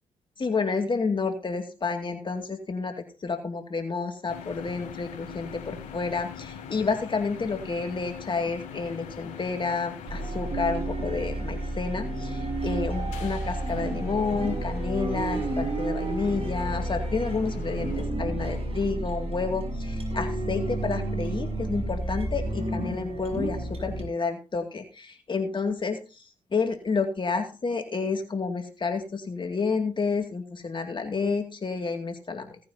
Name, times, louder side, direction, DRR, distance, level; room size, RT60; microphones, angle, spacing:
voice 1, 0.4-32.5, left 4 dB, 40° left, 5 dB, 2.3 m, -30 dB
sound 1, 4.3-18.0, left 7 dB, 85° left, 3.4 m, -43 dB
sound 2, 10.1-24.0, right 2 dB, 50° right, 6.8 m, -31 dB
17.5 x 9.4 x 2.8 m, 0.33 s
supercardioid pair, 60°, 13 cm